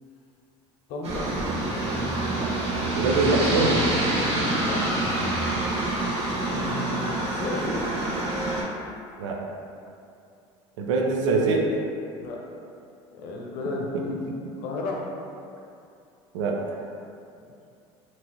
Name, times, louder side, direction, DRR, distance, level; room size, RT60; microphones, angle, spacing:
voice 1, 0.9-1.4 4.6-5.1 6.4-8.1 12.2-12.4 13.1-14.2 14.6-15.1, left 2 dB, 70° left, -1 dB, 0.6 m, -33 dB
Aircraft, 1.0-8.6, right 1 dB, 40° right, 0.9 m, -26 dB
voice 2, 2.9-3.8 9.2-9.4 10.8-11.8 16.3-16.9, right 3 dB, 90° right, 0 dB, 0.4 m, -24 dB
3.0 x 2.6 x 2.8 m, 2.5 s
supercardioid pair, 85°, 15 cm